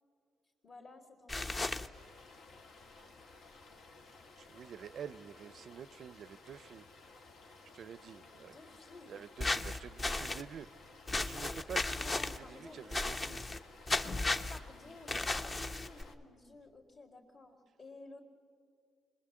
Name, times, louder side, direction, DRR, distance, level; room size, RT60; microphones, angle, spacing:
voice 1, 0.6-1.6 8.2-9.1 11.9-12.8 14.5-18.2, left 2 dB, 50° left, 3.2 m, -54 dB
sound 1, 1.3-1.9 9.4-10.4 11.1-12.4 12.9-13.6 13.9-14.6 15.1-16.0, left 2 dB, 30° left, 0.9 m, -34 dB
sound 2, 1.9-16.2, left 3 dB, 75° left, 2.0 m, -57 dB
voice 2, 4.4-6.8 7.7-8.5 9.1-10.7 11.2-13.4, right 8 dB, 60° right, 0.5 m, -48 dB
26.0 x 20.5 x 7.6 m
cardioid pair, 90°, 0 cm